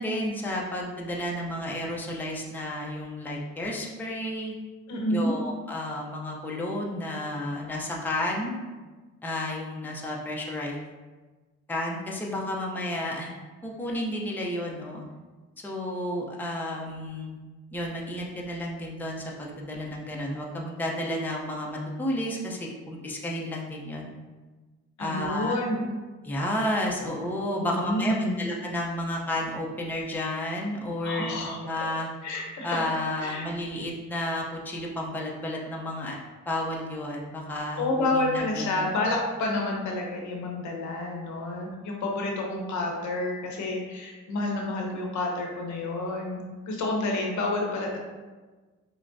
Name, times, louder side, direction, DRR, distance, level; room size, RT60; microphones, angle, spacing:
voice 1, 0.0-4.5 5.1-8.6 9.2-10.8 11.7-13.3 13.6-15.0 15.6-17.4 17.7-24.1 25.0-25.6 26.2-32.1 32.6-36.2 36.5-38.9, left 1 dB, 5° left, -2 dB, 0.6 m, -32 dB
voice 2, 4.9-5.4 25.0-25.9 27.6-28.4 31.0-31.9 32.2-32.8 33.2-33.5 37.8-48.0, left 2 dB, 70° left, 0 dB, 0.9 m, -29 dB
6.0 x 2.1 x 2.6 m, 1.3 s
cardioid pair, 90°, 30 cm